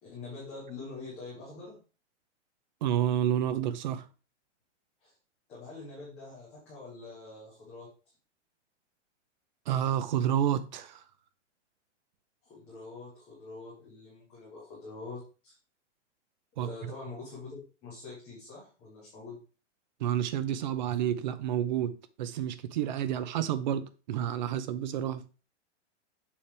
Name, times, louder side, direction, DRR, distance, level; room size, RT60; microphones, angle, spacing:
voice 1, 0.0-1.8 5.0-5.1 5.5-7.9 12.5-15.5 16.6-19.4, left 3 dB, 5° left, 0.3 m, -45 dB
voice 2, 2.8-4.0 9.7-11.0 16.6-16.7 20.0-25.2, right 10 dB, 40° right, 0.7 m, -29 dB
7.1 x 3.4 x 5.9 m
hypercardioid pair, 165°, 36 cm